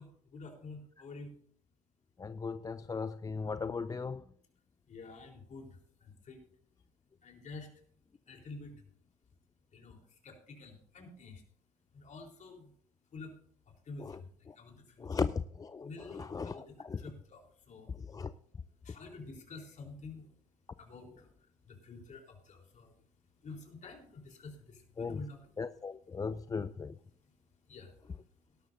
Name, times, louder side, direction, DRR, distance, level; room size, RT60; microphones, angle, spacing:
voice 1, 0.0-1.4 4.9-6.4 7.2-7.7 8.3-8.8 9.7-11.4 11.9-12.7 13.1-13.4 13.8-15.4 15.8-20.4 20.8-28.6, left 3 dB, 40° left, 3.8 m, -50 dB
voice 2, 2.2-4.2 14.0-14.2 14.5-14.6 15.0-17.0 17.9-18.3 25.0-25.2 25.6-27.0, left 5 dB, 20° left, 0.4 m, -37 dB
17.5 x 12.5 x 2.7 m
hypercardioid pair, 65°, 18 cm